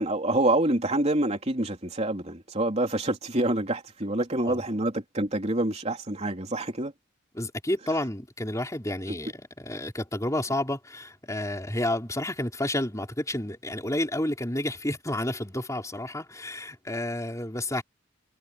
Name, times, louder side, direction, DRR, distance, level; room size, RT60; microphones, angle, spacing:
voice 1, 0.0-6.9 9.1-9.2, right 1 dB, 35° right, 3.4 m, -27 dB
voice 2, 7.3-17.8, left 1 dB, 15° left, 4.5 m, -30 dB
head